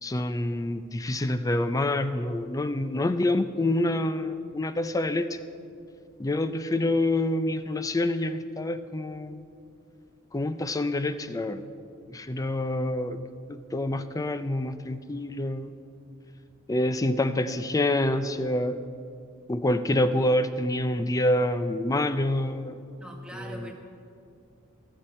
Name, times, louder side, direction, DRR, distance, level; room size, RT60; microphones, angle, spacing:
voice 1, 0.0-5.4 6.2-9.4 10.3-11.6 12.1-13.2 13.7-15.7 16.7-18.8 19.5-22.8 23.3-23.7, left 1 dB, 15° left, 11 dB, 0.4 m, -27 dB
voice 2, 23.0-23.7, right 1 dB, 5° right, 1 dB, 1.3 m, -42 dB
21.5 x 7.2 x 4.3 m, 2.4 s
head